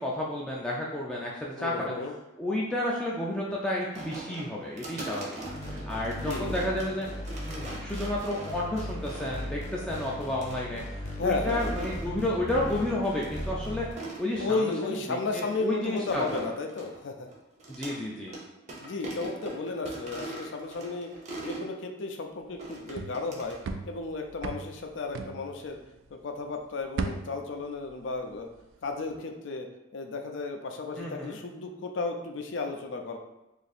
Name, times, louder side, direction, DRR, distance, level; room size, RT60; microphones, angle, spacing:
voice 1, 0.0-1.9 2.4-5.4 5.7-7.1 7.4-13.9 14.2-16.3 17.7-18.3 31.0-31.4, left 1 dB, 5° left, -5 dB, 0.4 m, -31 dB
voice 2, 1.6-2.1 5.8-5.9 6.2-6.6 11.2-11.7 14.4-17.3 18.8-21.1 21.4-23.6 23.8-25.8 26.1-28.5 28.8-29.7 29.9-33.2, left 3 dB, 65° left, 4 dB, 0.4 m, -33 dB
sound 1, 4.0-9.5 10.0-10.6 11.3-12.1 12.6-13.0 13.2-13.3 13.8-14.8 15.3-18.0 18.3-18.4 18.7-21.7 22.6-23.6, right 2 dB, 35° right, 0.7 m, -41 dB
sound 2, 5.4-13.9, left 1 dB, 35° left, 0.8 m, -37 dB
sound 3, 22.5-26.3 26.6-28.6 28.9-29.2, right 3 dB, 80° right, 0.3 m, -38 dB
2.8 x 2.5 x 4.1 m, 0.99 s
head